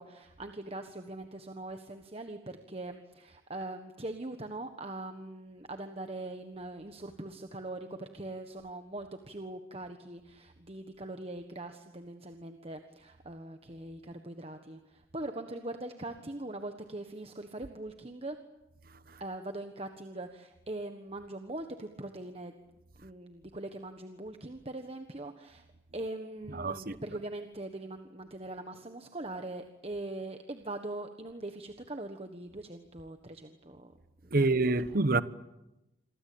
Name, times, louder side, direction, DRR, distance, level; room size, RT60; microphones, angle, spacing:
voice 1, 0.0-18.4 19.2-22.5 23.0-25.6 25.9-33.9 34.4-34.9, right 2 dB, 30° right, 1.4 m, -42 dB
voice 2, 26.5-27.0 34.3-35.2, right 2 dB, 45° right, 1.1 m, -27 dB
28.0 x 23.5 x 8.7 m
head